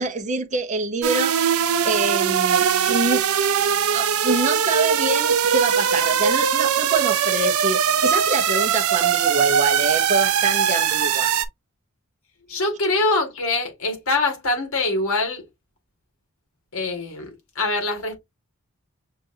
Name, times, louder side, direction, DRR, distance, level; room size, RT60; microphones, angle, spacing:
voice 1, 0.0-1.4 1.8-3.2 3.9-11.3, right 3 dB, 35° right, 0.7 m, -26 dB
sound 1, 1.0-11.4, right 8 dB, 85° right, 0.6 m, -20 dB
voice 2, 12.5-15.4 16.7-17.3 17.5-18.2, left 2 dB, 75° left, 1.8 m, -23 dB
6.6 x 2.5 x 2.7 m
head